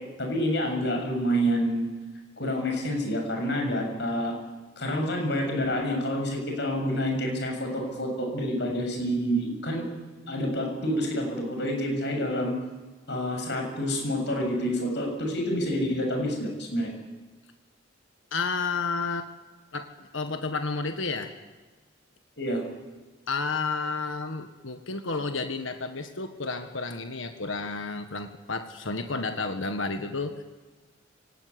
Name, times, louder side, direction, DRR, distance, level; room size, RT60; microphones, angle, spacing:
voice 1, 0.0-1.9 2.4-4.3 4.8-9.9 10.3-12.5 13.1-16.9 22.4-22.6, equal, 60° left, 3 dB, 7.0 m, -28 dB
voice 2, 18.3-19.3 19.7-19.9 20.1-21.3 23.3-30.4, left 4 dB, 85° left, 7 dB, 1.6 m, -31 dB
24.5 x 18.0 x 9.8 m, 1.4 s
head